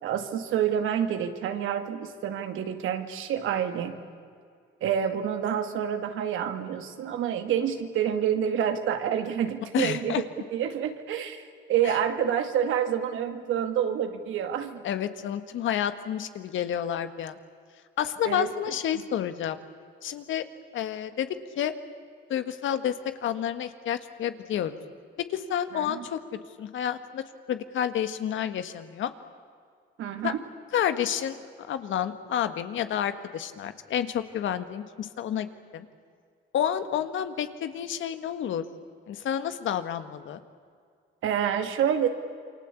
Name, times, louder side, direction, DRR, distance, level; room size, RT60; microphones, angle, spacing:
voice 1, 0.0-4.0 4.8-10.2 10.5-11.4 11.7-14.8 18.2-18.5 25.7-26.0 30.0-30.4 41.2-42.1, right 9 dB, 85° right, 7 dB, 2.3 m, -28 dB
voice 2, 9.7-10.2 11.8-12.0 14.8-17.4 18.0-19.6 20.0-20.4 20.7-21.3 21.6-21.7 22.3-24.8 25.3-27.2 27.5-29.1 30.2-30.3 30.7-35.9 36.5-38.6 39.1-40.4, left 9 dB, 75° left, 10 dB, 1.7 m, -30 dB
28.0 x 24.0 x 8.4 m, 2.1 s
cardioid pair, 90°, 20 cm